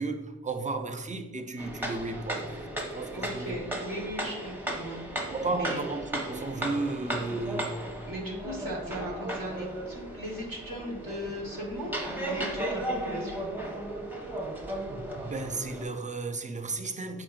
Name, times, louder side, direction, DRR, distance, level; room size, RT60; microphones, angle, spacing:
voice 1, 0.0-3.6 5.2-7.9 14.9-17.2, right 3 dB, 20° right, 0.5 m, -34 dB
sound 1, 1.6-15.8, right 1 dB, 5° right, 0.9 m, -35 dB
voice 2, 3.1-5.3 5.6-5.8 8.1-13.4, equal, 70° right, 1.4 m, -38 dB
4.9 x 4.4 x 2.4 m
wide cardioid pair, 50°, 35 cm